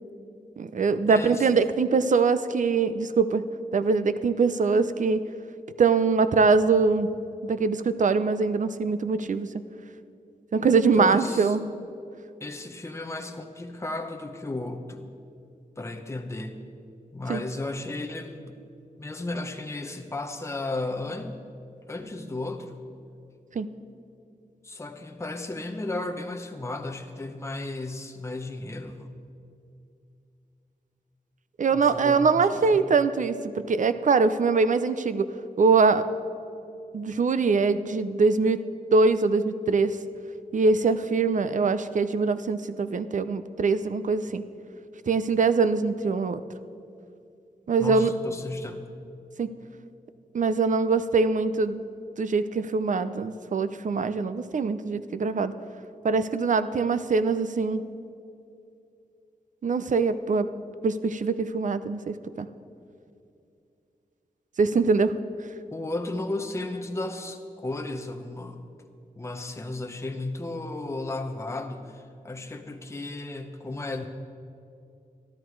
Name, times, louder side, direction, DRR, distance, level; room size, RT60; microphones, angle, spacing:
voice 1, 0.6-3.4 3.7-5.2 5.8-7.1 7.4-9.5 10.5-11.7 17.3-17.4 23.5-23.7 31.6-35.3 35.6-36.1 36.9-38.6 38.9-40.0 40.5-44.4 45.1-46.4 47.7-48.1 49.4-49.5 50.3-51.8 52.2-55.5 56.0-57.8 59.6-60.5 60.8-62.5 64.6-65.2, right 4 dB, 55° right, 12 dB, 0.5 m, -23 dB
voice 2, 1.1-1.6 11.0-11.6 12.4-15.1 15.8-16.6 17.1-18.6 19.0-21.4 21.9-22.9 24.6-29.2 31.7-32.8 47.8-48.8 65.7-68.7 69.2-74.1, left 2 dB, 20° left, 4 dB, 0.8 m, -34 dB
13.0 x 12.5 x 4.7 m, 2.6 s
wide cardioid pair, 120°, 15 cm